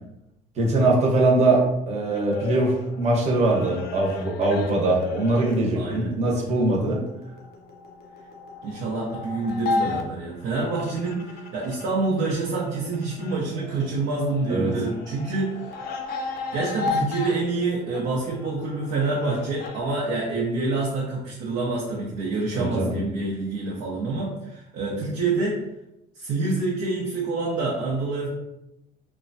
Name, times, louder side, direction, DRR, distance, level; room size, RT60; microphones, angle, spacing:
voice 1, 0.6-7.0 14.5-14.8 22.5-23.0, right 2 dB, 40° right, -2 dB, 0.9 m, -22 dB
sound 1, 2.1-11.9 12.2-19.8, left 4 dB, 65° left, 0.5 m, -34 dB
voice 2, 5.7-6.1 8.6-15.7 16.5-25.6 26.2-28.3, right 3 dB, 80° right, -4 dB, 0.6 m, -27 dB
3.0 x 2.1 x 2.6 m, 0.85 s
cardioid pair, 110°, 17 cm